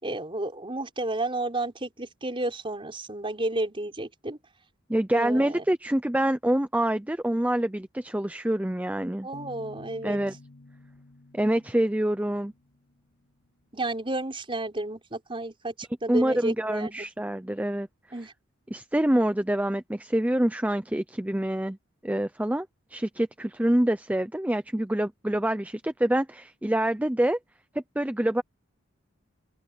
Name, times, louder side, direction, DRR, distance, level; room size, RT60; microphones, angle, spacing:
voice 1, 0.0-4.4 5.1-5.6 9.2-10.2 13.7-17.1 18.1-18.3, right 2 dB, 25° right, 5.0 m, -32 dB
voice 2, 4.9-9.3 10.0-10.4 11.3-12.5 16.1-17.9 18.7-21.8 22.0-22.7 22.9-27.4 27.7-28.4, right 1 dB, 5° right, 0.6 m, -26 dB
sound 1, 9.3-13.0, left 2 dB, 55° left, 3.2 m, -50 dB
open air
head